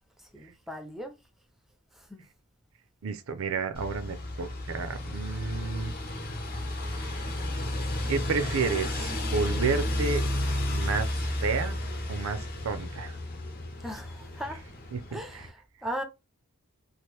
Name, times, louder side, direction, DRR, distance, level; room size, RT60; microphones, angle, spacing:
voice 1, 0.2-1.1 1.9-2.2 13.8-14.6 15.1-16.0, equal, ahead, 0.5 m, -38 dB
voice 2, 3.0-5.9 6.8-7.4 8.1-10.2 10.7-11.8 12.1-13.2 14.9-15.5, right 5 dB, 65° right, 0.5 m, -31 dB
sound 1, 3.7-15.5, left 1 dB, 40° left, 0.9 m, -32 dB
2.9 x 2.5 x 3.2 m
head